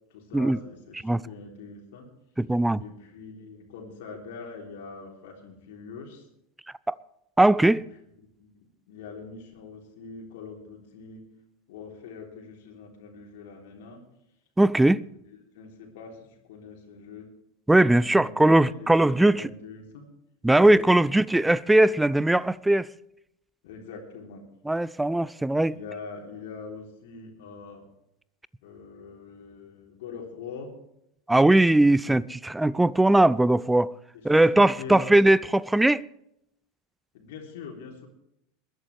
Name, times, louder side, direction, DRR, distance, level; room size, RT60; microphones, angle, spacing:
voice 1, 0.1-2.1 2.8-6.3 7.7-7.9 8.4-11.2 11.7-14.0 14.9-15.0 15.3-17.3 17.9-18.9 19.3-20.1 20.6-20.8 23.6-24.4 25.7-27.8 28.6-30.7 34.5-35.1 37.1-38.1, left 5 dB, 55° left, 3.4 m, -43 dB
voice 2, 2.4-2.8 6.9-7.0 7.4-7.8 14.6-15.0 17.7-19.4 20.4-22.9 24.7-25.8 31.3-33.9 34.2-36.0, right 1 dB, 5° right, 0.4 m, -20 dB
21.0 x 12.5 x 3.3 m
figure-of-eight pair, 80°, 0 cm